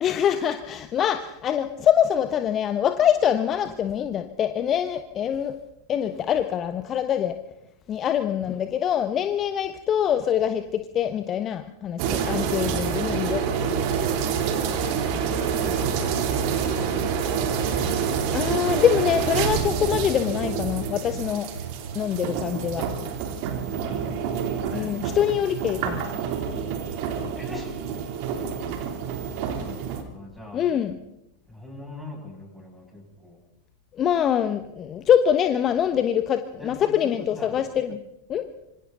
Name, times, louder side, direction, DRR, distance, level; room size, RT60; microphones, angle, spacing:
voice 1, 0.0-5.5 5.9-7.4 7.9-13.9 18.3-21.5 21.9-22.9 24.7-26.0 30.5-31.0 34.0-38.0 38.3-38.5, left 9 dB, 30° left, 9 dB, 1.2 m, -24 dB
sound 1, 12.0-30.0, right 7 dB, 45° right, 3.3 m, -27 dB
sound 2, 13.4-23.0, right 6 dB, 70° right, 1.2 m, -38 dB
voice 2, 14.6-17.3 23.6-25.0 27.3-27.7 28.3-28.9 29.3-30.6 31.5-33.4 36.6-37.6, left 2 dB, ahead, 0 dB, 7.3 m, -42 dB
26.5 x 25.0 x 4.0 m, 0.86 s
figure-of-eight pair, 90°, 0 cm